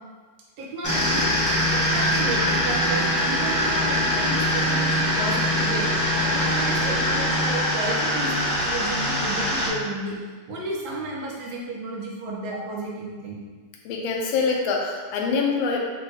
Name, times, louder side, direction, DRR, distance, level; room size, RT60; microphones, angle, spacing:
voice 1, 0.6-1.3 1.7-5.9 6.2-10.2 10.5-13.4, right 2 dB, 75° right, -3 dB, 1.5 m, -32 dB
sound 1, 0.8-9.7, equal, 20° left, 0.5 m, -23 dB
voice 2, 13.8-15.8, left 4 dB, 80° left, -1 dB, 1.4 m, -24 dB
6.2 x 2.2 x 3.3 m, 1.5 s
omnidirectional pair, 2.2 m